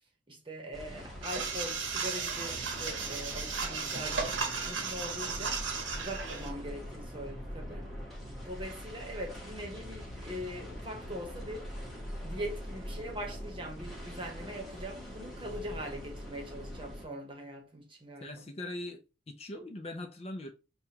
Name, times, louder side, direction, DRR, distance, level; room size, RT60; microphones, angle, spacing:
voice 1, 0.3-4.4 4.7-5.6 6.0-7.9 8.4-11.7 12.2-18.4, equal, 25° right, 1.0 m, -42 dB
sound 1, 0.7-17.0, equal, ahead, 1.0 m, -43 dB
sound 2, 1.2-6.5, right 5 dB, 80° right, 0.9 m, -35 dB
voice 2, 18.2-19.0 19.3-20.5, left 1 dB, 30° left, 0.5 m, -40 dB
6.7 x 2.3 x 2.8 m
head